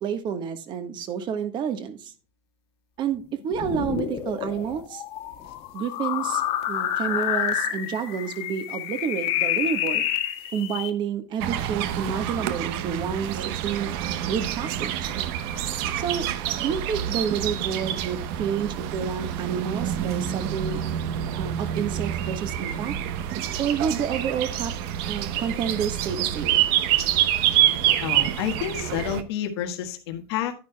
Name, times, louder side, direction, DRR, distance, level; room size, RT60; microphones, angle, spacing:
voice 1, 0.0-2.1 3.0-5.0 5.7-6.4 6.7-10.1 10.5-13.9 14.2-15.1 16.0-16.3 16.6-20.8 21.4-22.9 23.6-24.7 25.1-26.6, right 7 dB, 35° right, 10 dB, 1.4 m, -29 dB
sound 1, 3.5-10.9, left 10 dB, 45° left, 1.6 m, -28 dB
sound 2, 11.4-29.2, right 11 dB, 65° right, 1.0 m, -27 dB
voice 2, 28.0-30.5, left 10 dB, 90° left, 4 dB, 1.6 m, -29 dB
11.0 x 10.0 x 2.3 m, 0.35 s
supercardioid pair, 155°, 13 cm